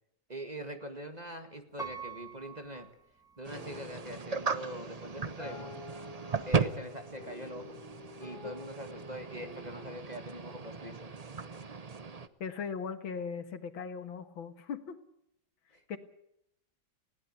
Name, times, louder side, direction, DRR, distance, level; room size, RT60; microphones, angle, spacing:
voice 1, 0.3-2.9 3.4-5.8 6.5-7.8 8.2-11.1 15.7-16.0, equal, 20° right, 7 dB, 2.0 m, -43 dB
Piano, 1.8-3.8 4.3-4.4, right 6 dB, ahead, 1.6 m, -45 dB
sound 1, 3.4-12.3, right 5 dB, 40° right, 0.5 m, -37 dB
sound 2, 3.5-12.1, left 2 dB, 25° left, 5.5 m, -50 dB
voice 2, 12.4-15.0 15.9-16.0, left 6 dB, 90° left, 10 dB, 2.3 m, -38 dB
20.5 x 17.0 x 8.1 m, 0.78 s
omnidirectional pair, 2.1 m